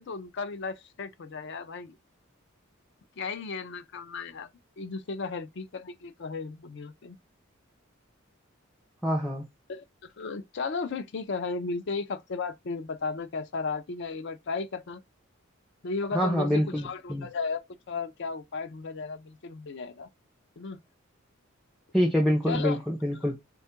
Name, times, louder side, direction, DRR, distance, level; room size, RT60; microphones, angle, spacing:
voice 1, 0.0-2.0 3.2-4.5 4.8-7.2 9.7-9.8 10.2-15.0 15.8-20.1 20.6-20.8 22.5-22.8, left 4 dB, 55° left, 0.5 m, -35 dB
voice 2, 9.0-9.4 16.1-17.3 21.9-23.3, equal, ahead, 0.5 m, -26 dB
3.5 x 2.4 x 4.3 m
head